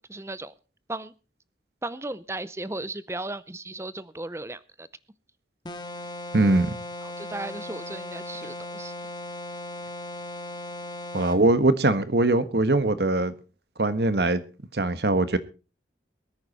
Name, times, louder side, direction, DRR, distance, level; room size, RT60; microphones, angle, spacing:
voice 1, 0.1-0.5 0.9-1.1 1.8-4.9 7.0-8.9, right 2 dB, 15° right, 0.6 m, -36 dB
sound 1, 5.6-11.4, left 1 dB, 25° left, 1.8 m, -37 dB
voice 2, 6.3-6.7 11.1-13.3 13.8-14.4 14.7-15.4, right 2 dB, 70° right, 1.3 m, -21 dB
22.0 x 9.7 x 4.1 m
head